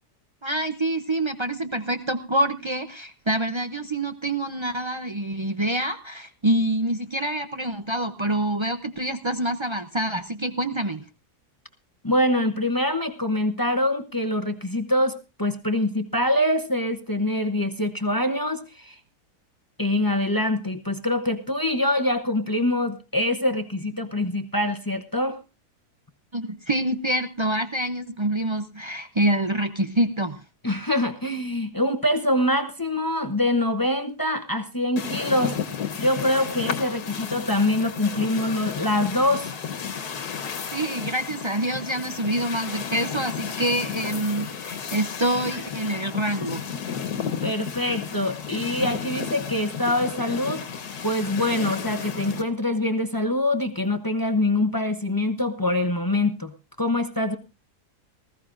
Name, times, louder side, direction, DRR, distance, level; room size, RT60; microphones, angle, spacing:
voice 1, 0.4-11.1 26.3-30.4 40.7-46.6, right 1 dB, 40° right, 8 dB, 0.4 m, -26 dB
voice 2, 12.0-18.9 19.8-25.4 30.6-35.5 36.0-39.5 47.4-57.3, left 1 dB, 20° left, 8 dB, 0.6 m, -24 dB
sound 1, 35.0-52.4, left 7 dB, 75° left, 1.6 m, -33 dB
19.5 x 15.0 x 2.5 m, 0.29 s
omnidirectional pair, 1.7 m